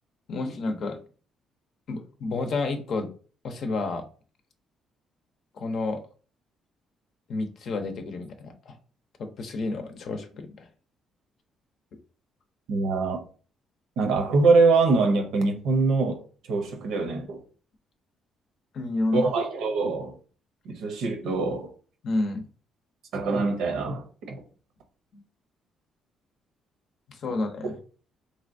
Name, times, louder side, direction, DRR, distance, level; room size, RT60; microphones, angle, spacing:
voice 1, 0.3-1.0 1.9-3.1 3.4-4.1 5.5-6.0 7.3-8.8 9.2-10.7 18.7-19.3 22.0-22.5 25.1-25.2 27.1-27.8, left 3 dB, 60° left, 0.6 m, -30 dB
voice 2, 12.7-13.2 14.0-16.2 16.5-17.4 19.1-20.1 20.6-21.7 23.1-24.4, right 3 dB, 80° right, 0.6 m, -24 dB
3.3 x 2.7 x 2.6 m
cardioid pair, 95°, 0 cm